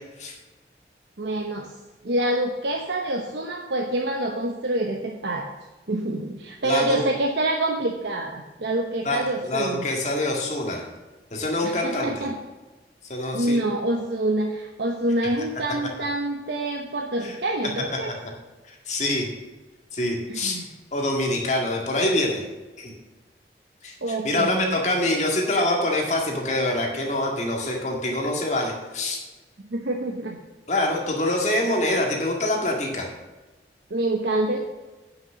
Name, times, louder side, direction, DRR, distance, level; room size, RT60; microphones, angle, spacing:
voice 1, 1.2-1.7 2.0-5.5 5.9-9.9 11.6-12.4 13.3-18.1 20.3-20.7 24.0-25.0 29.6-30.4 33.9-34.6, right 1 dB, 75° right, 2 dB, 1.0 m, -26 dB
voice 2, 6.6-7.0 9.1-10.8 11.3-12.3 13.1-13.6 17.2-17.4 18.7-19.3 19.9-20.6 20.9-22.4 22.8-22.9 23.8-29.2 30.7-33.1, left 1 dB, 40° left, 0 dB, 1.9 m, -25 dB
9.3 x 6.1 x 6.3 m, 1.2 s
head